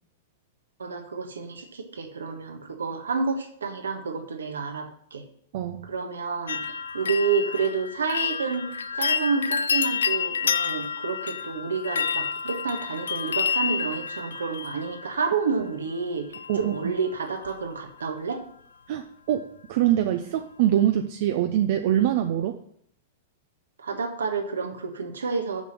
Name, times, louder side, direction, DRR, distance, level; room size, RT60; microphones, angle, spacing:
voice 1, 0.8-5.2 5.9-6.6 6.9-8.7 8.9-16.3 16.6-18.4 23.8-25.6, right 5 dB, 80° right, 5 dB, 1.5 m, -29 dB
voice 2, 5.5-5.9 16.5-16.7 18.9-22.6, right 11 dB, 55° right, 6 dB, 0.7 m, -24 dB
sound 1, 6.5-15.4 16.3-16.9 17.1-17.7 18.0-18.1, left 6 dB, 75° left, 0.5 m, -29 dB
7.1 x 6.0 x 7.5 m, 0.67 s
hypercardioid pair, 105°, 0 cm